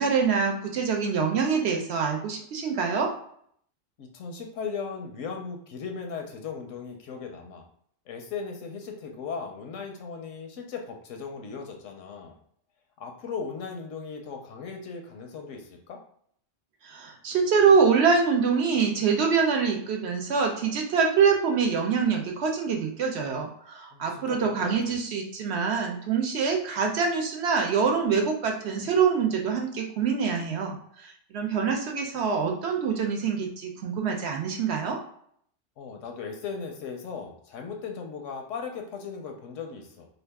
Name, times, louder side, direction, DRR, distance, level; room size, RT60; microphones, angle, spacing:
voice 1, 0.0-3.1 16.8-30.8 31.0-35.0, right 5 dB, 65° right, 2 dB, 0.8 m, -25 dB
voice 2, 4.0-7.6 8.1-12.4 13.0-16.0 23.9-24.9 35.8-40.1, left 5 dB, 80° left, 3 dB, 1.0 m, -37 dB
2.8 x 2.4 x 3.4 m, 0.64 s
omnidirectional pair, 1.3 m